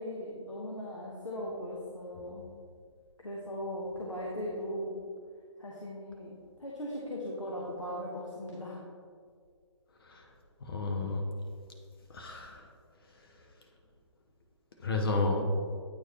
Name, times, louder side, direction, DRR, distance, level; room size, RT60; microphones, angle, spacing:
voice 1, 0.0-2.5 3.2-5.0 5.6-8.8, equal, 75° left, -4 dB, 1.1 m, -38 dB
voice 2, 10.6-11.3 12.1-12.6 14.8-15.5, left 3 dB, 50° left, 2 dB, 0.7 m, -31 dB
8.7 x 4.6 x 2.9 m, 2.1 s
figure-of-eight pair, 135°, 16 cm